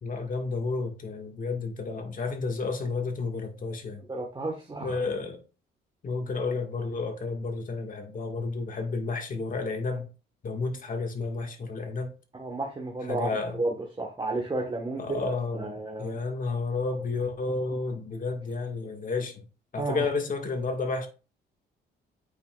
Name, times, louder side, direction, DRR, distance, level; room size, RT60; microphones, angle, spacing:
voice 1, 0.0-4.0 4.8-5.4 6.0-10.1 10.4-12.1 13.1-13.6 15.0-15.7 16.0-19.4 19.7-21.1, left 3 dB, 45° left, 1.7 m, -31 dB
voice 2, 4.1-5.0 12.3-16.2 19.8-20.1, right 2 dB, 20° right, 1.3 m, -32 dB
8.5 x 5.6 x 2.4 m
cardioid pair, 90°, 20 cm